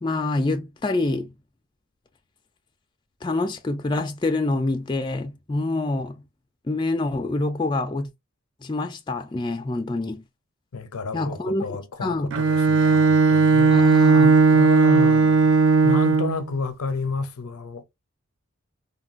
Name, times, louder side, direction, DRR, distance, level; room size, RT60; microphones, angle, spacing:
voice 1, 0.0-1.3 3.2-6.2 6.7-8.1 8.6-10.2 11.1-11.6 12.0-12.3 13.7-14.7, left 2 dB, 20° left, 0.3 m, -26 dB
voice 2, 10.7-13.9 14.5-15.5 15.8-17.8, left 3 dB, 90° left, 0.5 m, -31 dB
Bowed string instrument, 12.3-16.5, right 4 dB, 55° right, 0.3 m, -17 dB
3.3 x 2.2 x 2.4 m
head